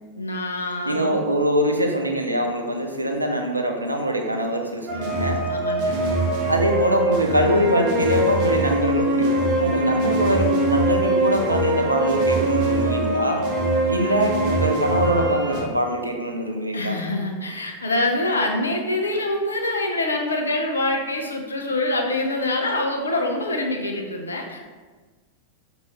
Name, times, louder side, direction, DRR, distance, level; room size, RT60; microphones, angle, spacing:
voice 1, 0.2-1.2 5.5-6.0 14.0-14.2 16.7-24.6, left 2 dB, 75° left, 2 dB, 0.5 m, -25 dB
voice 2, 0.9-5.4 6.5-13.4 13.9-17.0, equal, 85° right, 2 dB, 0.5 m, -23 dB
sound 1, 4.9-15.6, right 1 dB, 40° right, 0.7 m, -22 dB
5.4 x 2.6 x 3.1 m, 1.4 s
figure-of-eight pair, 90°, 0 cm